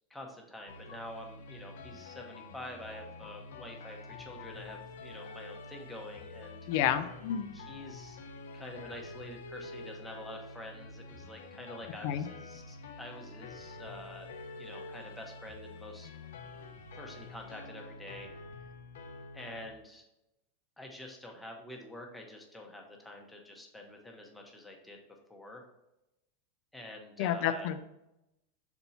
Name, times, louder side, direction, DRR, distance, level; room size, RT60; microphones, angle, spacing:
voice 1, 0.1-6.7 7.5-8.2 8.5-14.3 14.6-16.1 16.6-18.3 19.3-20.0 20.8-25.0 25.3-25.7 26.7-27.7, left 1 dB, 5° left, 0 dB, 0.9 m, -47 dB
sound 1, 0.7-19.7, left 3 dB, 85° left, 0.9 m, -47 dB
voice 2, 6.7-7.6 12.0-12.2 27.2-27.8, left 10 dB, 45° left, 10 dB, 0.5 m, -30 dB
6.8 x 4.3 x 4.1 m, 0.90 s
supercardioid pair, 175°, 0 cm